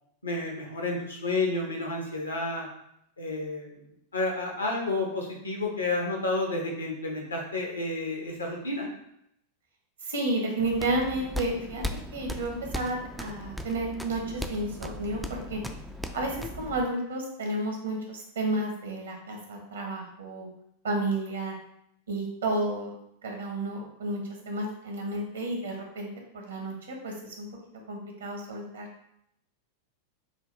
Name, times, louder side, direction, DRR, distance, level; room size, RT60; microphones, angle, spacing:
voice 1, 0.2-2.7 3.2-8.9, left 2 dB, 75° left, 0 dB, 1.1 m, -31 dB
voice 2, 10.0-11.8 12.1-15.6 16.1-20.5 20.8-21.5 22.1-22.9 23.2-26.1 26.3-27.5 27.9-28.9, right 2 dB, 70° right, 1 dB, 1.1 m, -31 dB
sound 1, 10.6-16.8, left 1 dB, ahead, 0.3 m, -38 dB
5.6 x 2.3 x 3.4 m, 0.76 s
figure-of-eight pair, 90°, 0 cm